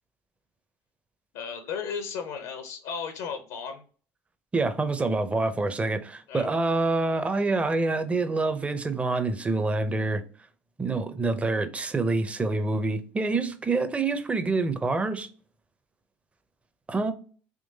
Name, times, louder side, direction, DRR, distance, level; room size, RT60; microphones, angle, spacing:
voice 1, 1.3-3.8 6.3-6.5, left 6 dB, 80° left, 0.6 m, -35 dB
voice 2, 4.5-10.2 10.8-15.3 16.9-17.1, right 3 dB, 20° right, 0.6 m, -26 dB
3.7 x 2.9 x 2.7 m
hypercardioid pair, 75°, 6 cm